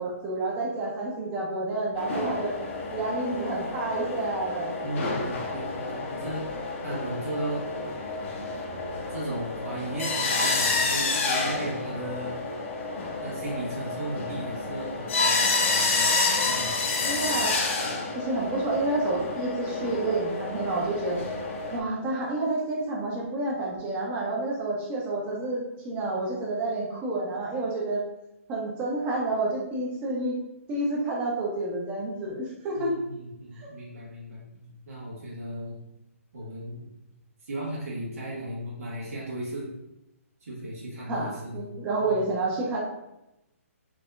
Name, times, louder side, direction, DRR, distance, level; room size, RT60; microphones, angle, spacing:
voice 1, 0.0-2.5 2.9-4.7 17.0-17.6 18.1-21.2 21.7-28.0 28.5-30.4 30.7-32.9 33.5-33.7 41.1-42.8, right 2 dB, 20° right, -3 dB, 0.8 m, -29 dB
sound 1, 2.0-21.8, left 3 dB, 55° left, 0.9 m, -29 dB
voice 2, 4.8-6.5 6.8-7.7 9.1-12.4 13.2-16.9 32.7-35.8 36.3-36.8 37.4-39.7 40.4-41.7 42.0-42.2, right 1 dB, 75° right, -6 dB, 1.5 m, -36 dB
4.7 x 2.8 x 2.4 m, 0.89 s
hypercardioid pair, 155°, 8 cm